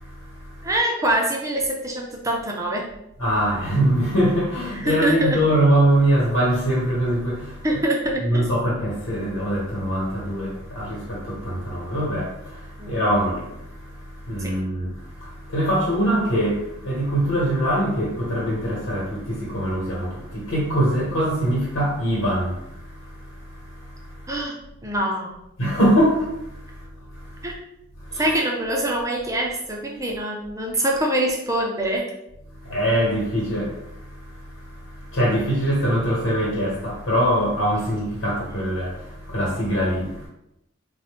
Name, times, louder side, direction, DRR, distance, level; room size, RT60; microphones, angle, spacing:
voice 1, 0.0-0.7 3.2-7.7 8.2-24.3 25.6-27.5 28.0-28.4 32.6-40.3, right 1 dB, 75° left, 1.3 m, -23 dB
voice 2, 0.6-2.9 4.9-5.4 7.6-8.5 12.8-13.0 14.4-14.5 24.3-24.6 24.8-25.3 27.4-27.6 28.2-32.1, right 1 dB, 15° right, 0.5 m, -24 dB
4.1 x 2.2 x 3.3 m
head